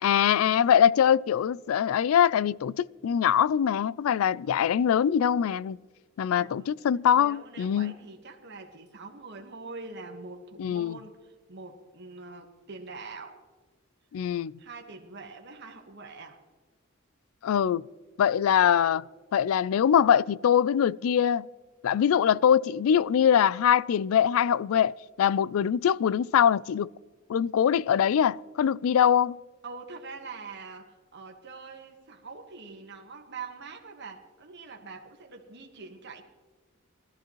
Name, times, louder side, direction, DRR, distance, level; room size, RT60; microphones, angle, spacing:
voice 1, 0.0-5.8 6.2-7.9 10.6-11.0 14.1-14.5 17.4-17.8 18.2-19.0 19.3-21.5 21.8-26.9 27.3-29.4, left 8 dB, 90° left, 0.3 m, -23 dB
voice 2, 6.4-6.7 7.1-13.4 14.6-16.4 29.6-36.2, right 4 dB, 55° right, 1.4 m, -44 dB
20.5 x 13.5 x 3.1 m
head